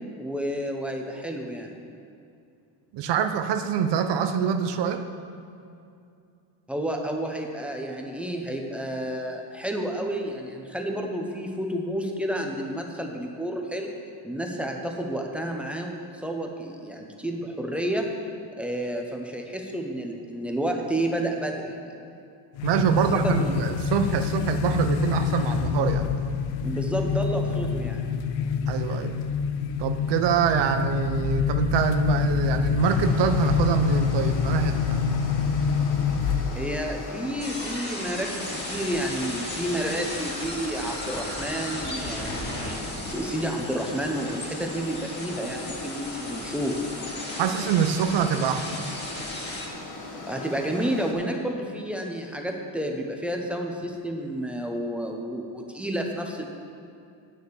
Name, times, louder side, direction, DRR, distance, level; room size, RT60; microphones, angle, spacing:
voice 1, 0.2-1.8 6.7-13.9 14.2-18.1 18.6-21.8 22.7-22.8 23.2-23.5 26.6-28.1 36.5-46.9 50.3-56.5, right 1 dB, 5° right, 1 dB, 1.0 m, -30 dB
voice 2, 2.9-5.0 22.6-26.1 28.7-29.1 29.8-35.0 47.4-48.8, right 7 dB, 65° right, 8 dB, 0.8 m, -25 dB
sound 1, 22.6-36.8, left 7 dB, 80° left, 0.7 m, -26 dB
sound 2, 32.8-51.1, left 2 dB, 45° left, 1.7 m, -39 dB
sound 3, 37.4-49.7, left 1 dB, 20° left, 1.9 m, -36 dB
8.9 x 6.8 x 7.1 m, 2.5 s
cardioid pair, 130°, 45 cm